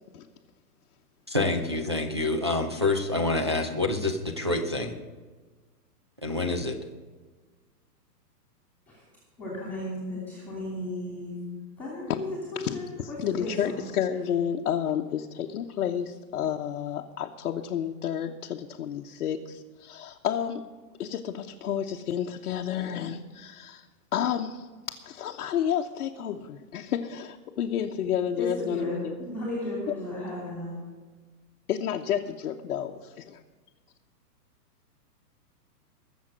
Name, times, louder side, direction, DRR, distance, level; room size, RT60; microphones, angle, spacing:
voice 1, 1.3-4.9 6.2-6.8, left 2 dB, 20° right, 0 dB, 0.4 m, -27 dB
voice 2, 9.4-11.3 11.8-13.8 28.4-30.8, left 1 dB, 5° left, -4 dB, 2.9 m, -35 dB
voice 3, 12.5-20.7 21.0-23.8 24.1-29.2 29.9-30.0 31.7-33.4, left 9 dB, 60° left, 1 dB, 1.0 m, -30 dB
21.0 x 7.3 x 6.4 m, 1.4 s
hypercardioid pair, 165°, 48 cm